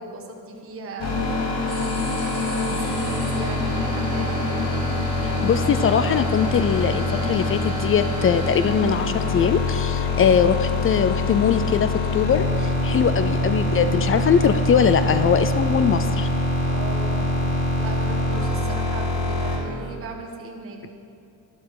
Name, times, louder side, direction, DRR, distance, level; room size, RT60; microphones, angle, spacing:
voice 1, 0.0-1.6 2.6-4.6 10.1-10.5 16.6-17.3 17.8-20.8, right 3 dB, 30° right, 0 dB, 1.4 m, -37 dB
sound 1, 1.0-19.6, left 2 dB, 85° left, 2.6 m, -24 dB
sound 2, 1.7-8.7, right 1 dB, 15° left, 2.8 m, -40 dB
voice 2, 5.2-16.3, left 7 dB, 35° left, 11 dB, 0.4 m, -21 dB
12.5 x 11.5 x 4.8 m, 2.5 s
cardioid pair, 140°, 41 cm